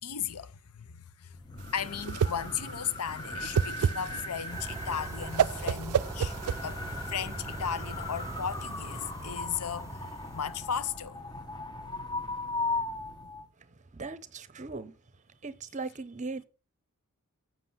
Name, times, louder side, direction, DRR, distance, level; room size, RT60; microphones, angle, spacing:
voice 1, 0.0-6.3 6.6-6.8 7.1-10.0 10.3-11.2, left 8 dB, 90° left, 0.6 m, -36 dB
sound 1, 1.3-13.5, left 2 dB, 20° left, 1.1 m, -38 dB
Whoosh swoosh swish, 1.6-7.1, right 7 dB, 80° right, 0.4 m, -30 dB
sound 2, 4.5-10.9, right 2 dB, 15° right, 0.5 m, -41 dB
voice 2, 13.9-14.9 15.4-16.4, right 3 dB, 35° right, 0.9 m, -38 dB
7.6 x 6.2 x 5.8 m
head